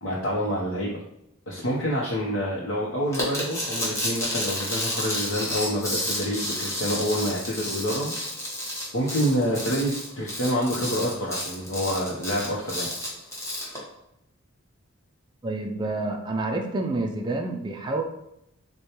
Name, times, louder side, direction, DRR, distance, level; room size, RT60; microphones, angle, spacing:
voice 1, 0.0-1.0 1.5-8.1 8.9-12.9, equal, 70° left, -5 dB, 0.8 m, -27 dB
sound 1, 3.1-13.8, left 1 dB, 15° left, 1.0 m, -31 dB
voice 2, 15.4-18.0, right 2 dB, 20° right, 1 dB, 0.4 m, -28 dB
6.4 x 2.2 x 2.9 m, 0.81 s
head